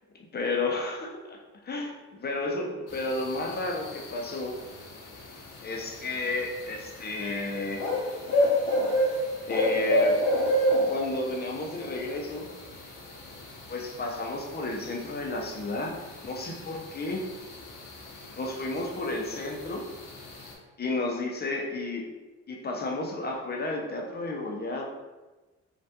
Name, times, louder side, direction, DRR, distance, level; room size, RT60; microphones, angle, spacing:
voice 1, 0.3-1.4 1.6-4.6 5.6-7.8 9.5-10.2 10.9-12.5 13.7-16.0 16.2-17.3 18.4-19.9 20.8-22.1 22.5-24.8, left 2 dB, 35° left, 0 dB, 0.6 m, -32 dB
sound 1, 2.9-20.5, equal, 70° left, 0.9 m, -31 dB
3.4 x 2.4 x 2.7 m, 1.2 s
cardioid pair, 90°, 30 cm